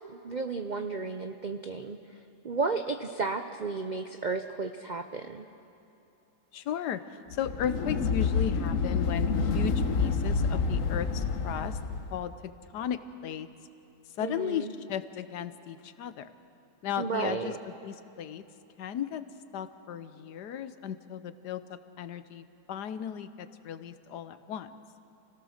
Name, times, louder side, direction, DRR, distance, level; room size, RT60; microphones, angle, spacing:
voice 1, 0.1-2.0 2.4-5.5 14.2-14.7 17.0-17.6, right 4 dB, 70° right, 7 dB, 0.4 m, -33 dB
voice 2, 6.5-11.8 12.1-13.5 14.1-16.3 16.8-18.4 18.8-19.2 19.5-24.8, left 9 dB, 80° left, 12 dB, 1.4 m, -36 dB
sound 1, 7.3-12.2, left 5 dB, 55° left, 1.3 m, -28 dB
28.5 x 17.0 x 6.5 m, 2.9 s
omnidirectional pair, 1.8 m